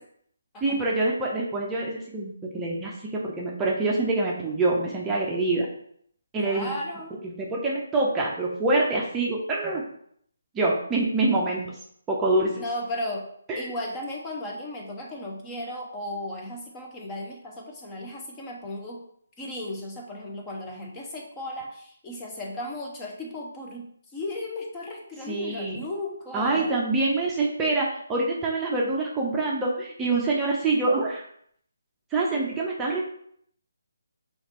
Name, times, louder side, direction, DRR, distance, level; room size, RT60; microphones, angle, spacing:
voice 1, 0.6-5.7 6.3-6.7 7.2-9.8 10.5-11.6 12.1-12.6 13.5-13.7 25.3-25.8 26.3-31.3 32.1-33.1, right 2 dB, 15° right, -3 dB, 0.7 m, -25 dB
voice 2, 6.4-7.2 12.6-13.2 13.6-19.0 19.4-23.9 24.1-26.8, left 1 dB, 15° left, 0 dB, 0.8 m, -35 dB
4.9 x 3.1 x 3.2 m, 0.66 s
figure-of-eight pair, 145°, 0 cm